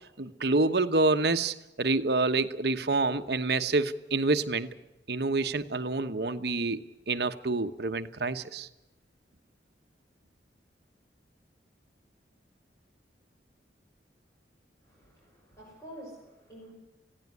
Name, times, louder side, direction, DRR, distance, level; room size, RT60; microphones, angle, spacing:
voice 1, 0.2-4.7 5.1-6.8 7.1-8.7, right 3 dB, 60° right, 9 dB, 1.1 m, -27 dB
voice 2, 14.8-16.7, right 1 dB, 15° left, -3 dB, 6.6 m, -48 dB
19.0 x 16.0 x 9.7 m, 0.95 s
head